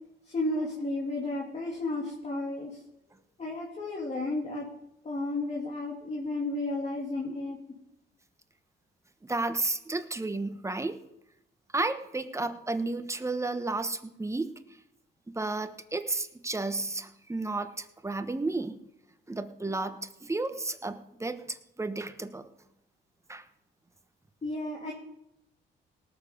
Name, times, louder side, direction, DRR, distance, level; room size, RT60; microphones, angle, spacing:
voice 1, 0.3-2.7 3.4-4.6 5.0-7.6 24.4-24.9, left 2 dB, 35° left, -2 dB, 2.7 m, -32 dB
voice 2, 9.2-11.0 11.7-14.5 15.3-18.8 19.3-22.5 23.3-23.4, right 2 dB, 15° right, 9 dB, 1.1 m, -32 dB
18.5 x 7.2 x 5.3 m, 0.82 s
cardioid pair, 90°, 20 cm